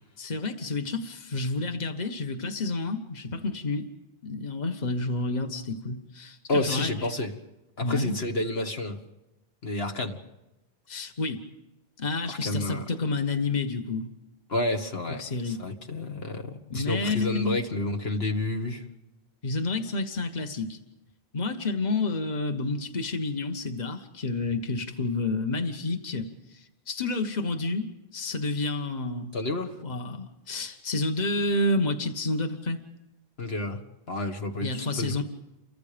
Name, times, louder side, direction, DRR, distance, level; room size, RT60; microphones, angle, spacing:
voice 1, 0.2-3.9 4.2-7.1 7.8-8.1 10.9-11.4 12.0-14.1 15.1-15.6 16.7-17.6 19.4-20.8 21.3-29.3 29.8-32.8 34.6-35.2, left 3 dB, 45° left, 5 dB, 1.6 m, -30 dB
voice 2, 6.5-7.3 7.8-9.0 9.6-10.2 12.3-12.8 14.5-18.8 29.3-29.8 33.4-33.8 34.1-35.2, left 2 dB, 75° left, 4 dB, 2.1 m, -30 dB
29.5 x 24.0 x 5.2 m, 1.0 s
omnidirectional pair, 1.1 m